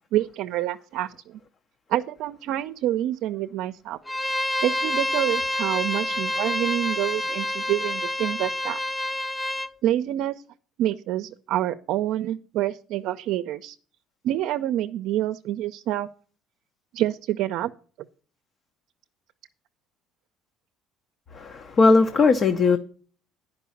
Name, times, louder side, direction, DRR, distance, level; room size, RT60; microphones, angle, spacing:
voice 1, 0.1-1.4 1.9-4.0 4.6-8.8 9.8-10.4 10.8-13.8 14.2-16.1 16.9-17.7, right 13 dB, 65° right, 0.6 m, -27 dB
Bowed string instrument, 4.1-9.7, left 1 dB, 5° left, 0.4 m, -28 dB
voice 2, 21.3-22.8, left 4 dB, 35° left, 0.7 m, -19 dB
10.0 x 5.3 x 7.1 m
cardioid pair, 135°, 0 cm